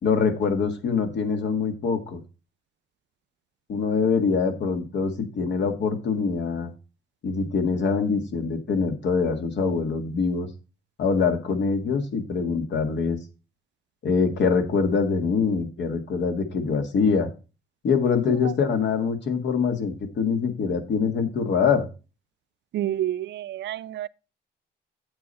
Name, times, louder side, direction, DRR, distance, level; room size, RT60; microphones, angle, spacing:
voice 1, 0.0-2.2 3.7-6.7 7.2-10.5 11.0-13.2 14.0-17.3 17.8-21.9, left 5 dB, 65° left, 1.8 m, -24 dB
voice 2, 22.7-24.1, right 12 dB, 65° right, 0.4 m, -29 dB
8.8 x 7.0 x 4.2 m
cardioid pair, 90°, 20 cm